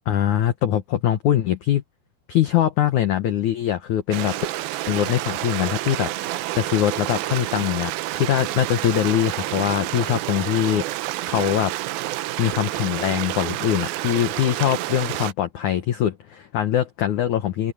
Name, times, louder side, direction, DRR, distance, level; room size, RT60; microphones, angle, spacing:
voice 1, 0.1-1.8 2.3-4.4 4.9-10.9 11.3-11.7 12.4-17.7, left 11 dB, 90° left, 1.7 m, -22 dB
Stream, 4.1-15.3, right 16 dB, 80° right, 2.2 m, -29 dB
omnidirectional pair, 5.1 m